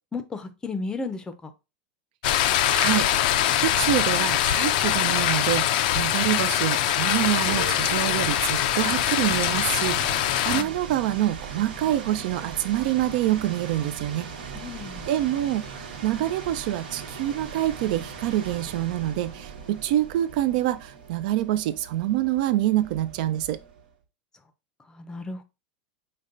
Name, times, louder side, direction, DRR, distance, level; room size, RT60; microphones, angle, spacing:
voice 1, 0.1-1.5 10.5-10.7 14.5-15.1 24.9-25.4, left 3 dB, 15° left, 0.5 m, -34 dB
sound 1, 2.2-10.6, left 11 dB, 65° left, 0.4 m, -23 dB
voice 2, 2.7-3.1 3.6-14.3 15.1-23.6, right 13 dB, 60° right, 0.4 m, -26 dB
sound 2, 7.2-23.9, right 5 dB, 85° right, 1.2 m, -39 dB
5.2 x 2.2 x 3.7 m
supercardioid pair, 135°, 5 cm